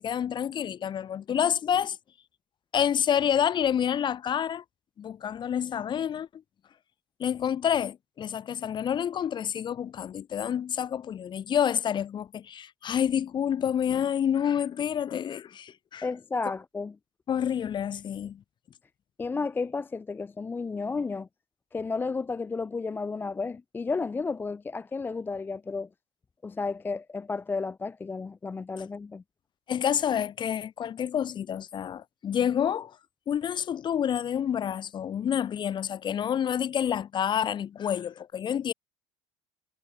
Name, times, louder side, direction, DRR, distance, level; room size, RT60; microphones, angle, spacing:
voice 1, 0.0-2.0 2.7-4.6 5.0-6.3 7.2-16.1 17.3-18.4 29.7-33.0 33.3-38.7, left 9 dB, 35° left, 0.8 m, -28 dB
voice 2, 16.0-17.0 19.2-21.3 21.7-25.9 26.4-29.2, left 4 dB, 15° left, 0.3 m, -32 dB
supercardioid pair, 90°, 13 cm